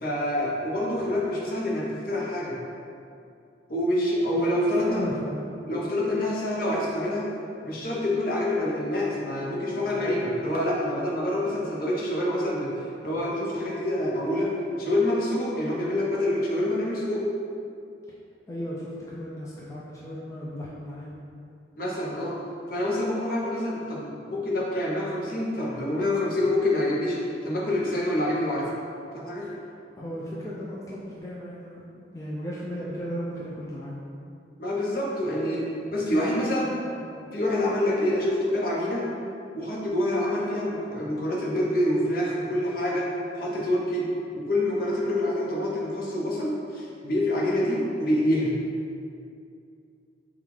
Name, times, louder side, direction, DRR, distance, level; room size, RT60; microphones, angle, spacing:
voice 1, 0.0-2.5 3.7-5.0 5.7-7.3 7.6-12.7 13.0-14.5 14.8-17.3 21.8-22.4 22.7-28.7 29.1-29.5 34.6-36.8 37.3-39.0 39.5-43.1 43.4-44.1 44.3-48.6, left 1 dB, 55° left, -4 dB, 0.7 m, -26 dB
voice 2, 4.9-5.4 18.5-21.1 29.4-29.7 30.0-31.8 32.1-34.0 36.1-37.3, equal, 20° left, -6 dB, 0.3 m, -36 dB
5.3 x 2.4 x 3.0 m, 2.5 s
head